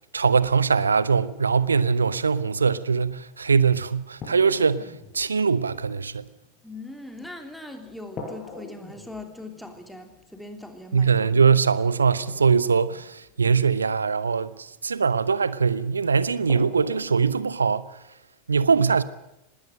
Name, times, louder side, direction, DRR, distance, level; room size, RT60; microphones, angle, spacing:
voice 1, 0.1-4.9 5.1-6.2 10.9-17.8 18.5-19.0, right 5 dB, 75° right, 0.9 m, -22 dB
sound 1, 3.3-3.4 4.2-7.6 8.2-14.3 15.6-15.7 16.5-17.4, left 3 dB, 30° left, 7.0 m, -44 dB
voice 2, 6.6-11.1, left 2 dB, ahead, 3.2 m, -40 dB
20.0 x 17.5 x 7.8 m
figure-of-eight pair, 90°, 0 cm